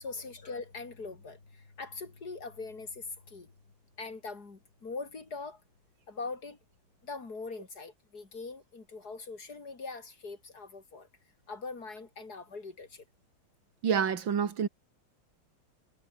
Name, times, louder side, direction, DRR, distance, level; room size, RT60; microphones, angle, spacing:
voice 1, 0.0-3.5 4.0-5.6 6.1-6.6 7.0-11.1 11.5-13.0, left 4 dB, 55° left, 4.0 m, -42 dB
voice 2, 13.8-14.7, right 7 dB, 80° right, 2.7 m, -28 dB
omnidirectional pair, 2.1 m